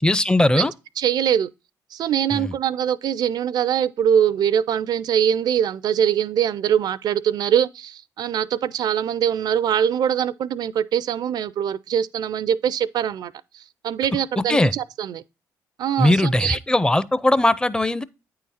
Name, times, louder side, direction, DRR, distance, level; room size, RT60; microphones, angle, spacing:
voice 1, 0.0-0.7 2.3-2.5 14.4-14.7 16.0-18.0, left 1 dB, 10° left, 0.5 m, -19 dB
voice 2, 1.0-1.5 1.9-15.2 15.8-16.6, right 9 dB, 65° right, 0.4 m, -23 dB
8.8 x 3.8 x 4.1 m
supercardioid pair, 60°, 8 cm